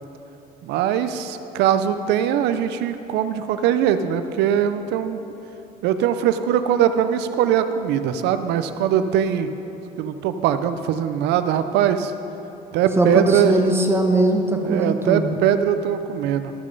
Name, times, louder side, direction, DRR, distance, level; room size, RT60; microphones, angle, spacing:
voice 1, 0.6-5.2 5.8-9.5 10.0-12.1 12.7-13.6 14.6-16.5, right 9 dB, 90° right, 10 dB, 0.5 m, -21 dB
voice 2, 13.0-15.3, right 1 dB, 15° right, 3 dB, 1.0 m, -20 dB
12.5 x 6.6 x 5.3 m, 3.0 s
cardioid pair, 110°, 17 cm